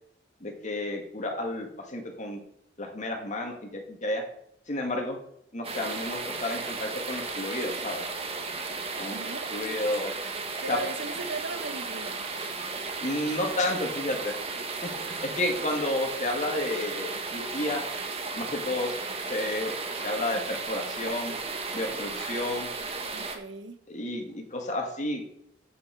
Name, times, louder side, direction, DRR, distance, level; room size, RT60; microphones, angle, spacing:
voice 1, 0.4-2.4 2.8-4.2 4.7-5.2 5.5-8.1 9.0-9.2 9.5-10.1 10.7-10.8 13.0-14.3 14.8-14.9 15.2-17.8 18.4-18.9 19.3-19.7 20.0-21.4 21.7-22.7 23.9-25.2, left 1 dB, 45° left, 2.2 m, -31 dB
sound 1, 5.6-23.4, right 4 dB, 35° right, 1.4 m, -35 dB
voice 2, 9.1-9.5 10.6-12.3 23.1-23.8, right 4 dB, 75° right, 0.9 m, -37 dB
8.4 x 7.5 x 5.3 m
head